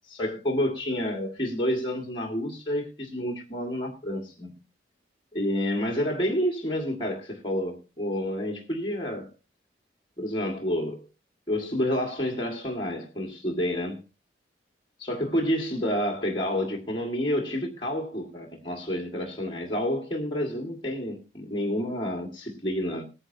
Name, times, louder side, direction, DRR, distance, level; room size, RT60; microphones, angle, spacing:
voice 1, 0.1-4.5 5.3-9.3 10.2-11.0 11.5-14.0 15.0-23.0, equal, 25° left, 1.8 m, -29 dB
19.0 x 9.8 x 2.7 m
head